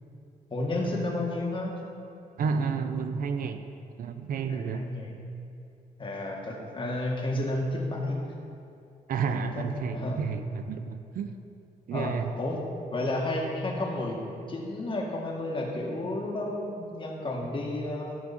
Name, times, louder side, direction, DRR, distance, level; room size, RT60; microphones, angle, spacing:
voice 1, 0.5-1.7 4.5-5.1 6.0-8.2 9.3-9.7 9.9-10.2 11.9-12.6 12.9-14.2 14.5-18.2, left 1 dB, 35° left, -1 dB, 2.0 m, -31 dB
voice 2, 2.4-3.6 4.0-4.9 9.1-11.3 11.9-12.3, right 6 dB, 75° right, 8 dB, 0.6 m, -31 dB
15.0 x 6.1 x 4.3 m, 2.6 s
cardioid pair, 105°, 15 cm